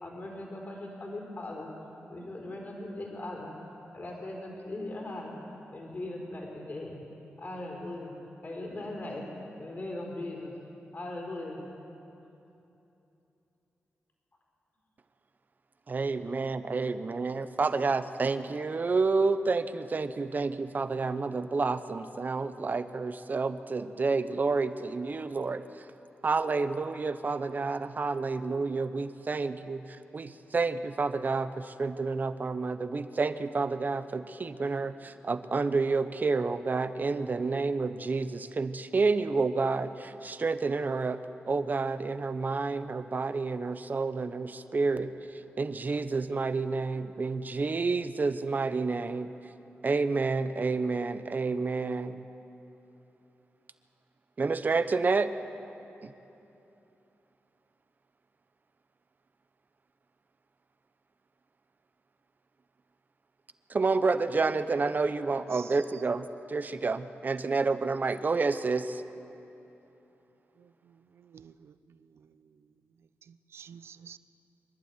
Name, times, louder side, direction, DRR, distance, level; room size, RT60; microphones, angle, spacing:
voice 1, 0.0-1.7 2.1-3.5 3.9-5.3 5.7-7.0 7.4-8.1 8.4-9.2 9.6-10.5 10.9-11.6 16.1-17.0, left 2 dB, 40° left, 4.3 m, -39 dB
voice 2, 15.9-25.6 26.2-29.9 30.1-41.2 41.5-45.1 45.6-49.3 49.8-52.2 54.4-55.3 56.0-56.1 63.7-69.0, right 4 dB, 45° right, 0.9 m, -29 dB
voice 3, 70.6-72.3 73.3-74.2, right 7 dB, 80° right, 0.6 m, -51 dB
25.0 x 11.5 x 9.4 m
cardioid pair, 85°, 4 cm